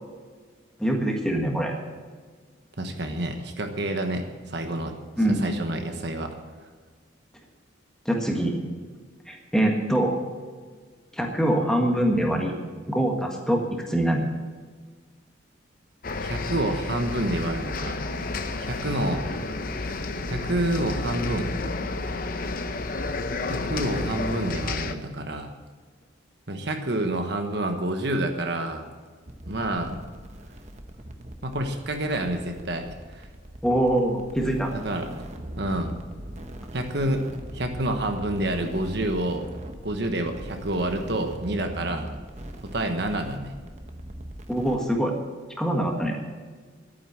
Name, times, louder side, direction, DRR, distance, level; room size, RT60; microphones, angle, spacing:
voice 1, 0.8-1.7 5.2-5.5 8.0-8.6 9.3-10.2 11.1-12.5 12.9-14.2 33.6-34.7 44.5-45.1 45.6-46.2, right 1 dB, 5° left, 1 dB, 1.6 m, -24 dB
voice 2, 2.8-4.9 5.3-6.3 16.2-18.0 18.6-19.3 20.3-21.5 23.5-25.5 26.5-28.9 29.5-30.0 31.4-33.3 34.7-35.2 35.6-35.9 36.7-37.2 37.5-39.4 39.8-42.1 42.6-43.5, right 1 dB, 55° right, 5 dB, 1.2 m, -28 dB
sound 1, 16.0-24.9, left 3 dB, 45° left, 0.8 m, -31 dB
sound 2, 29.3-44.9, right 1 dB, 35° right, 1.0 m, -40 dB
11.5 x 9.3 x 7.5 m, 1.5 s
head